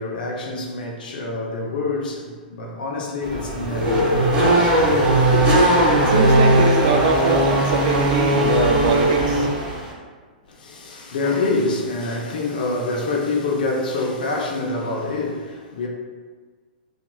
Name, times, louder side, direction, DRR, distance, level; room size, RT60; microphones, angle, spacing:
voice 1, 0.0-4.8 5.2-5.5 10.5-15.9, left 3 dB, 65° left, 0.6 m, -26 dB
Race car auto racing / Accelerating revving vroom, 3.2-9.9, right 1 dB, 30° right, 1.2 m, -18 dB
voice 2, 5.9-9.5, right 4 dB, 50° right, 0.4 m, -22 dB
2.9 x 2.5 x 2.3 m
hypercardioid pair, 110°, 5 cm